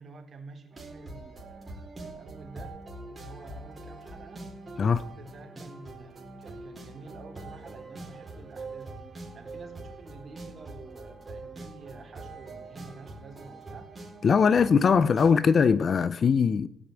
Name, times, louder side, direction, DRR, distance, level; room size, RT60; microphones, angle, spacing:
voice 1, 0.0-2.8 3.1-4.5 5.1-9.1 9.3-13.9 14.4-14.8 15.1-15.9, right 4 dB, 35° right, 3.9 m, -49 dB
sound 1, 0.7-15.3, right 2 dB, 20° right, 4.2 m, -44 dB
voice 2, 14.2-16.7, left 6 dB, 35° left, 0.5 m, -21 dB
16.5 x 8.5 x 9.1 m
cardioid pair, 130°, 0 cm